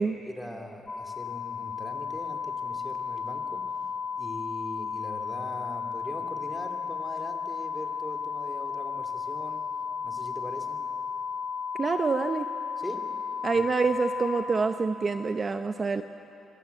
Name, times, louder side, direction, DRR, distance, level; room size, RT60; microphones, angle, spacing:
voice 1, 0.2-3.8 4.2-9.7 10.0-10.8 12.8-13.1 13.5-13.7, equal, 5° left, 3 dB, 2.8 m, -41 dB
sound 1, 0.9-14.4, left 6 dB, 25° left, 1.5 m, -34 dB
voice 2, 11.8-12.5 13.4-16.0, right 4 dB, 35° right, 8 dB, 0.7 m, -26 dB
24.5 x 16.0 x 8.4 m, 2.9 s
cardioid pair, 90°, 0 cm